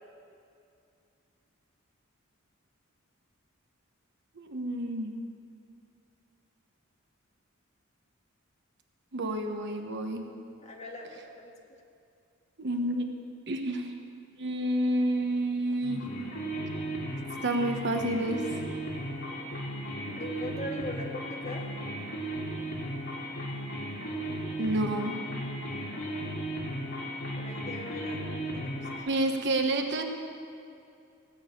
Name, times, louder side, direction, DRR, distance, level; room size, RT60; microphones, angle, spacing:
voice 1, 4.4-5.2 9.1-10.2 12.6-13.1 13.5-16.0 17.4-18.4 24.6-25.2 29.1-30.0, right 1 dB, 55° right, 4 dB, 1.2 m, -29 dB
voice 2, 10.6-11.5 20.1-21.7 27.4-28.9, left 1 dB, 35° left, 0 dB, 1.6 m, -41 dB
sound 1, 15.8-29.0, right 1 dB, 60° left, 2.4 m, -36 dB
16.0 x 6.4 x 8.5 m, 2.5 s
head